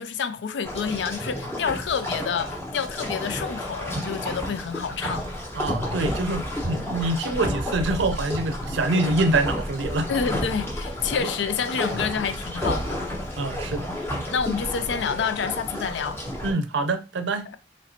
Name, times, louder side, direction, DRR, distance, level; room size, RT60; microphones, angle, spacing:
voice 1, 0.0-5.3 10.1-13.2 14.3-16.2 17.5-17.6, left 6 dB, 70° left, 0.4 m, -28 dB
sound 1, 0.6-16.5, equal, 15° left, 1.1 m, -31 dB
voice 2, 5.6-10.1 13.4-13.9 16.4-17.4, right 2 dB, 75° right, 0.5 m, -25 dB
4.2 x 3.1 x 2.8 m
head